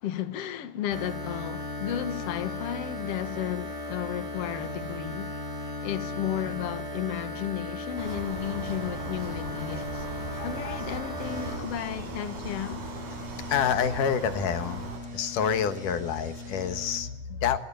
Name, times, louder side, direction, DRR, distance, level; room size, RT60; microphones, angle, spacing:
voice 1, 0.0-5.3 5.8-10.1 10.4-12.8, left 11 dB, 55° left, 2.3 m, -33 dB
sound 1, 0.9-11.6, left 1 dB, 10° right, 6.3 m, -36 dB
sound 2, 8.0-15.0, right 3 dB, 85° right, 7.4 m, -39 dB
voice 2, 10.3-10.8 13.5-17.6, left 8 dB, 85° left, 3.0 m, -28 dB
sound 3, 11.2-17.0, left 1 dB, 55° right, 7.7 m, -42 dB
24.0 x 22.5 x 8.6 m
omnidirectional pair, 3.6 m